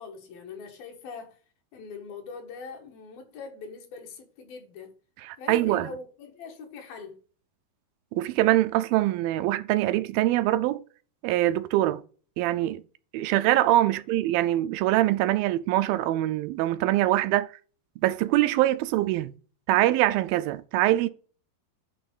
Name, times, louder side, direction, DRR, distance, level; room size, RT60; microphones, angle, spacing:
voice 1, 0.0-1.4 1.7-4.9 5.4-7.2, left 4 dB, 75° left, 3.3 m, -42 dB
voice 2, 5.2-5.9 8.1-10.8 11.2-12.0 12.4-12.8 13.1-17.5 18.0-19.3 19.7-21.1, right 15 dB, 80° right, 2.2 m, -23 dB
10.0 x 3.4 x 5.5 m
omnidirectional pair, 4.3 m